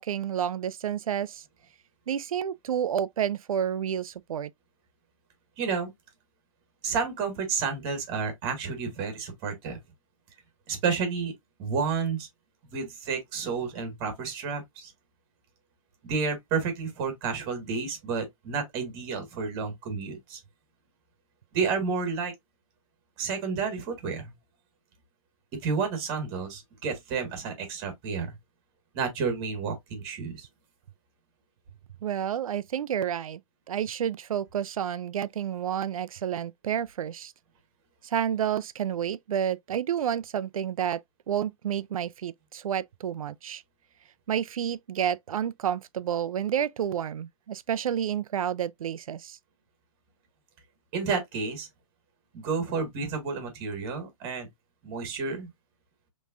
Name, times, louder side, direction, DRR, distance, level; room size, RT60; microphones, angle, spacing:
voice 1, 0.0-1.4 2.1-4.5 32.0-33.4 33.7-37.3 38.0-41.0 41.3-43.6 44.3-49.4, right 9 dB, 80° right, 0.5 m, -30 dB
voice 2, 5.6-5.9 6.8-9.8 10.7-11.3 11.6-12.3 12.7-14.9 16.0-20.4 21.5-22.3 23.2-24.3 25.6-28.3 28.9-30.5 50.9-51.7 52.3-54.5 54.8-55.5, right 5 dB, 25° right, 1.5 m, -30 dB
5.3 x 3.1 x 2.4 m
hypercardioid pair, 160°, 18 cm